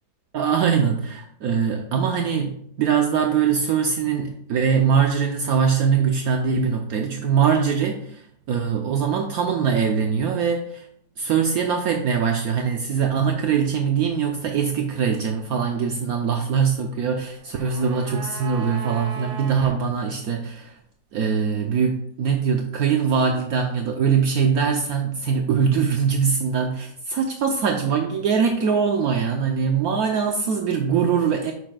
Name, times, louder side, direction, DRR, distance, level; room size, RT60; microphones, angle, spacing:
voice 1, 0.3-10.8 11.2-20.7 21.1-31.5, right 6 dB, 70° right, 3 dB, 1.1 m, -22 dB
sound 1, 17.2-19.8 20.1-20.2, right 4 dB, 40° right, 0.9 m, -37 dB
10.0 x 6.4 x 2.3 m, 0.67 s
omnidirectional pair, 1.8 m